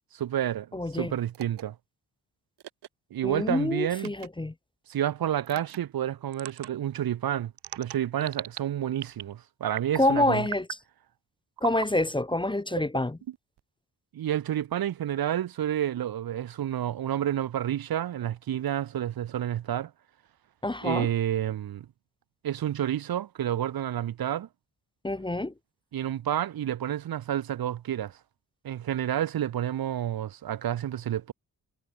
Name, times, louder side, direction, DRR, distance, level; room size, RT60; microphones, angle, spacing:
voice 1, 0.1-0.7 0.9-1.7 3.1-4.1 4.9-7.5 7.8-10.5 14.1-19.9 20.8-21.9 22.4-24.5 25.9-28.1 28.6-31.3, right 11 dB, 65° right, 0.7 m, -29 dB
voice 2, 0.7-1.1 3.2-4.5 10.0-10.7 11.6-13.2 20.6-21.1 25.0-25.5, left 1 dB, 10° left, 0.7 m, -27 dB
sound 1, 1.3-1.6 2.6-2.9 4.0-4.3 5.5-5.8 6.3-6.7 7.6-8.6 9.0-9.3 9.7-10.1 10.5-10.8 11.6-11.9 12.7-13.6, right 12 dB, 85° right, 1.0 m, -38 dB
cardioid pair, 70°, 40 cm